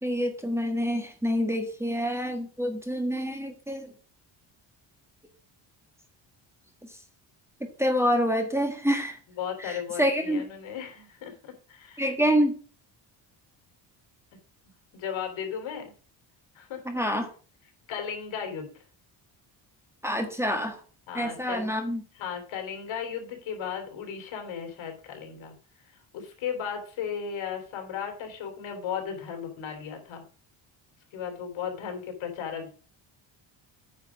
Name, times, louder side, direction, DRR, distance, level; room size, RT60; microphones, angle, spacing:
voice 1, 0.0-3.9 7.6-9.2 9.6-10.5 12.0-12.6 16.8-17.3 20.0-20.8 21.1-22.0, equal, 5° right, 5 dB, 1.5 m, -27 dB
voice 2, 9.4-12.0 14.9-15.9 16.6-17.0 17.9-18.7 21.1-21.7 22.2-25.6 26.1-30.2 31.1-32.7, left 7 dB, 75° left, 4 dB, 3.6 m, -35 dB
9.5 x 5.1 x 7.1 m, 0.39 s
cardioid pair, 135°, 46 cm